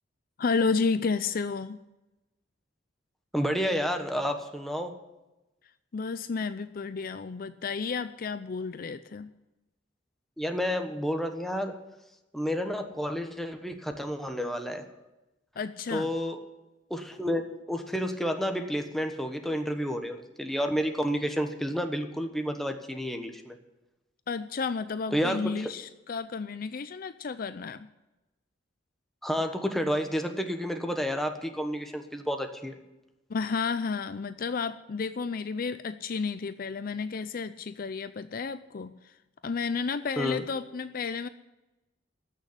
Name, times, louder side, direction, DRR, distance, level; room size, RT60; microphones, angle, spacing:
voice 1, 0.4-1.8 5.9-9.3 15.6-16.1 24.3-27.9 33.3-39.1 39.4-41.3, left 5 dB, 50° left, 12 dB, 0.5 m, -31 dB
voice 2, 3.3-5.0 10.4-11.7 12.3-14.9 15.9-16.4 16.9-17.4 17.7-23.6 25.1-25.7 29.2-32.7 40.2-40.4, equal, ahead, 5 dB, 1.2 m, -30 dB
14.5 x 6.7 x 9.7 m, 1.0 s
head